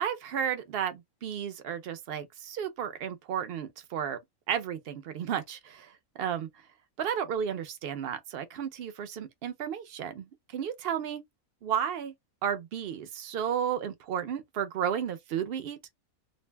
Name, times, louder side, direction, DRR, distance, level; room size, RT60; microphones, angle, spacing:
voice 1, 0.0-4.2 4.5-6.5 7.0-11.2 11.6-12.1 12.4-15.8, right 8 dB, 60° right, 0.6 m, -33 dB
2.6 x 2.1 x 3.2 m
omnidirectional pair, 1.5 m